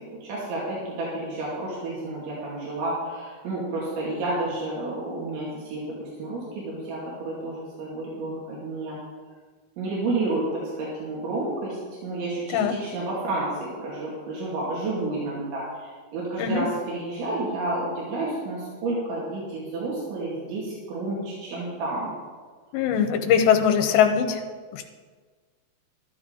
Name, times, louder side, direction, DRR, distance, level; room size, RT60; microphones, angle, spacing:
voice 1, 0.2-9.0 9.8-22.1, right 2 dB, 85° right, -6 dB, 4.7 m, -30 dB
voice 2, 22.7-24.4 24.7-24.9, left 8 dB, 80° left, 5 dB, 3.0 m, -21 dB
12.5 x 12.5 x 3.9 m, 1.5 s
omnidirectional pair, 5.1 m